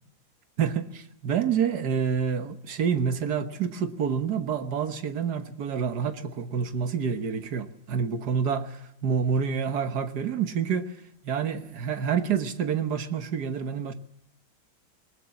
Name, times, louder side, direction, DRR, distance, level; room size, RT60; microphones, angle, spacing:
voice 1, 0.6-10.9 11.2-13.9, right 7 dB, 55° right, 1.6 m, -28 dB
20.5 x 19.5 x 7.0 m
omnidirectional pair, 2.2 m